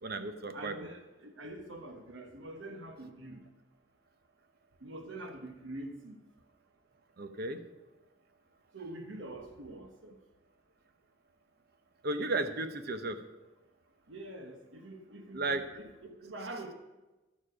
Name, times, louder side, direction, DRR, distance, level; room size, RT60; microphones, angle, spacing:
voice 1, 0.0-0.9 7.2-7.6 12.0-13.2 15.3-15.6, right 2 dB, 55° right, 9 dB, 0.8 m, -34 dB
voice 2, 0.5-3.4 4.8-6.2 8.7-10.2 14.1-16.7, right 1 dB, 80° right, 5 dB, 1.0 m, -45 dB
11.5 x 6.8 x 5.0 m, 1.1 s
head